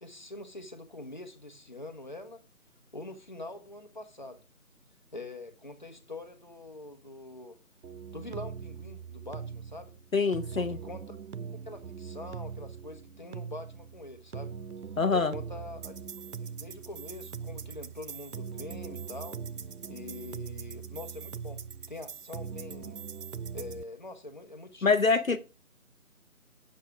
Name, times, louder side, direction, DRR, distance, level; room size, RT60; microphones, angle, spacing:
voice 1, 0.0-2.4 2.9-4.4 5.1-7.6 8.1-9.9 10.5-11.2 11.6-14.5 15.1-15.9 16.4-19.4 19.9-21.6 21.9-23.0 23.5-24.9, left 2 dB, 30° left, 1.0 m, -44 dB
sound 1, 7.8-23.8, right 6 dB, 85° right, 0.6 m, -41 dB
voice 2, 10.1-10.8 15.0-15.3 24.8-25.4, left 4 dB, 65° left, 0.8 m, -25 dB
7.4 x 7.3 x 4.7 m
figure-of-eight pair, 165°, 44 cm